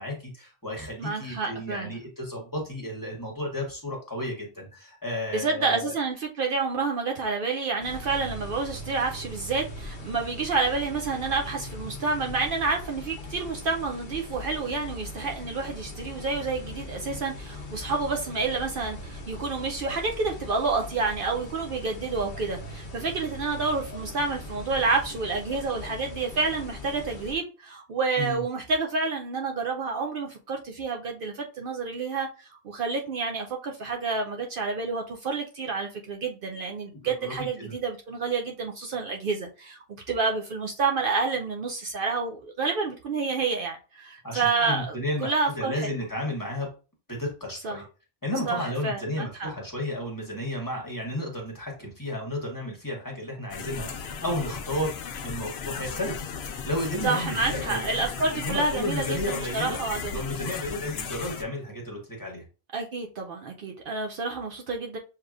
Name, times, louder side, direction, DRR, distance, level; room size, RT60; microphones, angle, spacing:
voice 1, 0.0-5.9 28.1-28.4 36.9-37.7 44.2-46.7 47.1-47.8 48.2-54.9 55.2-57.9 58.3-59.8 60.1-62.4, left 1 dB, 20° left, 1.2 m, -33 dB
voice 2, 1.0-1.9 5.3-45.0 45.2-45.9 47.6-47.8 48.5-49.5 57.0-60.4 62.7-65.0, right 4 dB, 65° right, 0.7 m, -29 dB
sound 1, 7.8-27.3, left 1 dB, 55° left, 0.9 m, -40 dB
sound 2, 53.5-61.4, left 6 dB, 85° left, 0.9 m, -36 dB
6.4 x 2.9 x 2.4 m
omnidirectional pair, 1.1 m